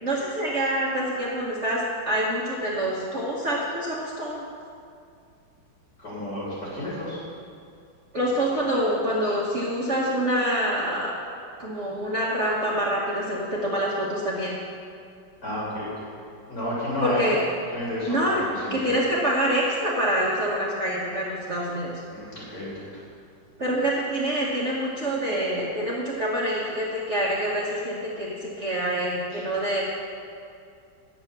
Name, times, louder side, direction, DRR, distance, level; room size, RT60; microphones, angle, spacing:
voice 1, 0.0-4.4 8.1-11.2 11.6-14.6 17.0-17.4 18.1-18.4 18.7-22.0 23.6-29.8, right 1 dB, 40° right, -6 dB, 1.6 m, -26 dB
voice 2, 6.0-7.2 15.4-15.9 16.5-17.2 17.7-18.4 22.1-22.9, left 1 dB, 50° left, -8 dB, 3.7 m, -31 dB
9.8 x 8.0 x 6.8 m, 2.4 s
omnidirectional pair, 2.1 m